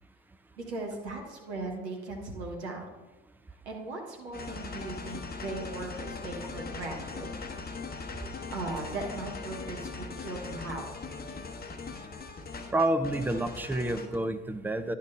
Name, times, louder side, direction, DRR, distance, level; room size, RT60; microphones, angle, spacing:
voice 1, 0.6-2.9 3.6-7.3 8.5-10.9, right 2 dB, 80° right, 1 dB, 1.3 m, -38 dB
sound 1, 4.3-14.2, left 4 dB, 30° left, 1.0 m, -40 dB
voice 2, 12.7-14.9, right 1 dB, 5° right, 9 dB, 0.6 m, -29 dB
10.5 x 4.5 x 5.4 m, 1.1 s
figure-of-eight pair, 50°, 34 cm